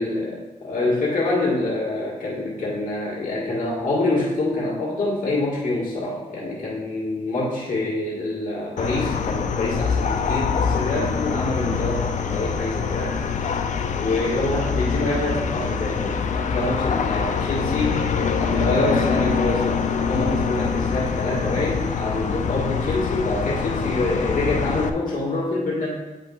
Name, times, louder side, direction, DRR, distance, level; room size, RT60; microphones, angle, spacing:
voice 1, 0.0-13.5 14.0-18.0 18.4-25.9, left 2 dB, 85° left, -6 dB, 1.7 m, -26 dB
sound 1, 8.8-24.9, left 6 dB, 65° left, 0.4 m, -24 dB
9.9 x 5.3 x 2.4 m, 1.1 s
wide cardioid pair, 140°, 14 cm